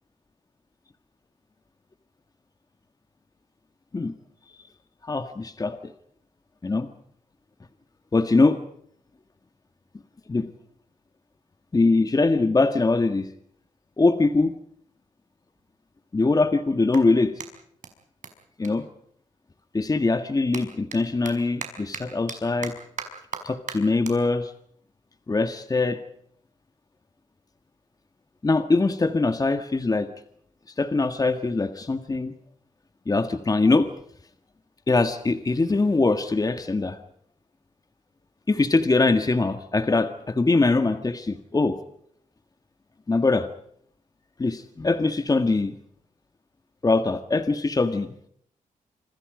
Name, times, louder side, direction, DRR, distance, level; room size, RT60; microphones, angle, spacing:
voice 1, 5.1-5.9 6.6-6.9 8.1-8.6 10.3-10.5 11.7-13.3 14.0-14.5 16.1-17.3 18.6-18.9 19.7-22.7 23.4-24.5 25.3-26.0 28.4-30.1 30.8-32.3 33.1-33.9 34.9-37.0 38.5-41.8 43.1-43.5 44.4-45.7 46.8-48.1, left 3 dB, 30° left, 9 dB, 1.7 m, -22 dB
Clapping, 14.8-14.9 15.6-19.6 19.9-26.6, right 6 dB, 65° right, 5.5 m, -41 dB
27.0 x 26.5 x 5.1 m, 0.67 s
cardioid pair, 85°, 13 cm